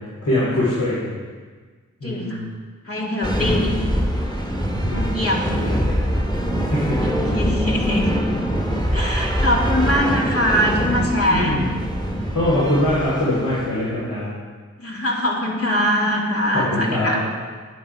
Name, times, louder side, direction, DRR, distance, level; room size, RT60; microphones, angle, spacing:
voice 1, 0.2-1.2 2.0-2.5 3.3-3.9 4.8-6.1 6.6-7.3 11.3-11.7 12.3-14.3 16.5-17.2, left 1 dB, 65° left, -9 dB, 3.5 m, -23 dB
voice 2, 2.0-2.4 2.8-3.7 4.9-5.4 7.0-8.1 8.9-11.7 14.8-17.2, equal, 45° left, -2 dB, 2.5 m, -22 dB
magic casting energy, 3.2-13.9, equal, 15° left, 1.9 m, -23 dB
9.8 x 9.2 x 4.7 m, 1.5 s
wide cardioid pair, 50°, 32 cm